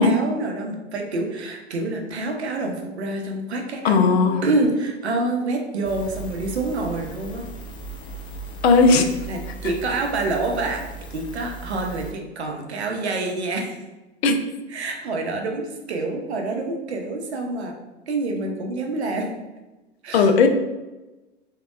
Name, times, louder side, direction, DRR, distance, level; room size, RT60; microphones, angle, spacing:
voice 1, 0.0-7.4 9.0-10.8 11.1-13.8 14.7-17.7 18.1-19.3 20.0-20.5, right 2 dB, 80° right, 2 dB, 0.7 m, -27 dB
voice 2, 3.8-4.4 8.6-9.1 14.2-14.4 20.1-20.5, left 4 dB, 70° left, 6 dB, 0.5 m, -16 dB
sound 1, 5.8-12.1, right 2 dB, 15° left, 0.3 m, -37 dB
3.4 x 2.8 x 2.4 m, 1.1 s
figure-of-eight pair, 90°, 33 cm